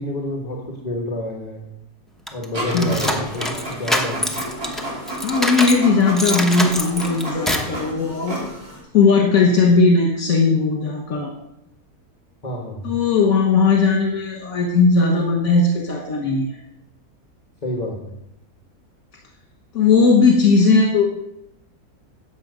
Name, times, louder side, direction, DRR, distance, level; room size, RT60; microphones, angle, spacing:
voice 1, 0.0-1.7 2.3-4.4 12.4-12.9 17.6-18.1, left 1 dB, 25° left, 0 dB, 1.5 m, -29 dB
sound 1, 2.3-5.8 6.2-7.8, left 1 dB, ahead, 0.8 m, -25 dB
Printer, 2.5-8.8, right 1 dB, 70° right, 4.2 m, -31 dB
voice 2, 2.7-3.3 5.2-8.5 8.9-11.3 12.8-16.6 19.7-21.0, left 4 dB, 65° left, 0 dB, 1.9 m, -17 dB
13.0 x 8.2 x 5.1 m, 0.84 s
omnidirectional pair, 1.6 m